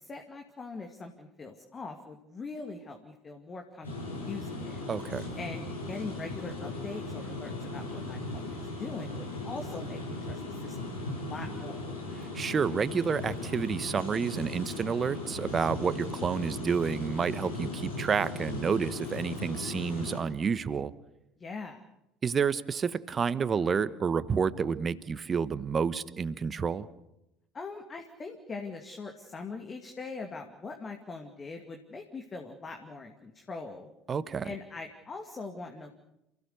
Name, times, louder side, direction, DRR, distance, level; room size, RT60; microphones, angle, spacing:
voice 1, 0.0-4.8 5.4-11.8 21.4-21.8 27.5-33.9 34.4-35.9, left 4 dB, 30° left, 4 dB, 2.4 m, -42 dB
sound 1, 3.8-20.2, left 2 dB, 85° left, 6.8 m, -37 dB
voice 2, 4.9-5.3 12.3-20.9 22.2-26.9 34.1-34.5, right 6 dB, 30° right, 15 dB, 1.1 m, -29 dB
28.5 x 16.5 x 6.8 m, 0.87 s
figure-of-eight pair, 65°, 0 cm